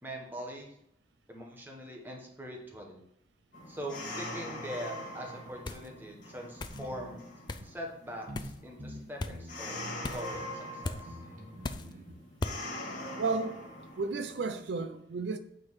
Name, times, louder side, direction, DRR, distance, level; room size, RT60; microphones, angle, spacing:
voice 1, 0.0-0.7 1.3-3.0 3.7-7.2 7.6-11.2, equal, 10° right, 1.4 m, -42 dB
sound 1, 3.5-14.7, left 1 dB, 45° left, 1.7 m, -43 dB
sound 2, 5.7-5.9 6.6-6.8 7.5-7.7 8.3-8.6 9.2-9.4 10.0-10.3 10.8-11.0 11.6-11.9 12.4-12.6, left 2 dB, 25° left, 0.4 m, -36 dB
sound 3, 6.7-7.1 7.6-7.7 8.3-8.5 8.8-9.6 10.3-10.4 10.9-12.1, equal, 50° right, 1.3 m, -46 dB
voice 2, 13.2-13.6 14.0-15.4, right 3 dB, 75° right, 0.5 m, -32 dB
8.8 x 3.9 x 4.7 m
head